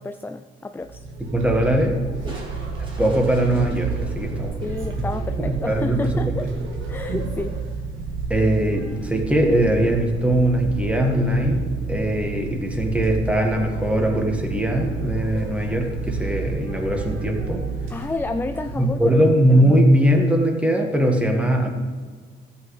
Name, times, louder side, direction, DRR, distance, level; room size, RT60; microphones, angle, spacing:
voice 1, 0.0-1.0 2.3-2.4 4.6-6.5 6.9-7.6 17.9-19.2, left 2 dB, 10° left, 7 dB, 0.4 m, -30 dB
sound 1, 0.8-19.0, right 4 dB, 85° right, 1.6 m, -30 dB
voice 2, 1.2-2.0 2.8-4.7 5.4-6.3 8.3-17.7 18.7-21.7, right 1 dB, 5° right, 2 dB, 1.7 m, -21 dB
Crushing, 2.3-5.6, right 1 dB, 25° right, 2.4 m, -42 dB
13.5 x 8.6 x 3.3 m, 1.5 s
cardioid pair, 90°, 20 cm